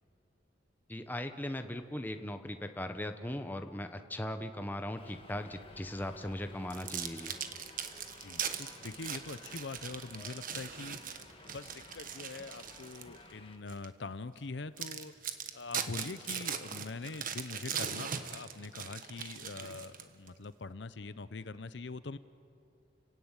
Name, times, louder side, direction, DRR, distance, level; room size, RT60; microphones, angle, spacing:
voice 1, 0.9-7.3, left 1 dB, 10° left, 7 dB, 1.1 m, -39 dB
Subway metro underground, 5.0-13.6, left 2 dB, 30° left, 2.0 m, -55 dB
sound 1, 6.7-13.2 13.7-13.9 14.4-14.5 14.8-20.3, right 8 dB, 50° right, 1.3 m, -40 dB
voice 2, 8.2-15.1 15.5-22.2, left 3 dB, 75° left, 14 dB, 0.7 m, -43 dB
30.0 x 17.0 x 9.1 m, 2.5 s
head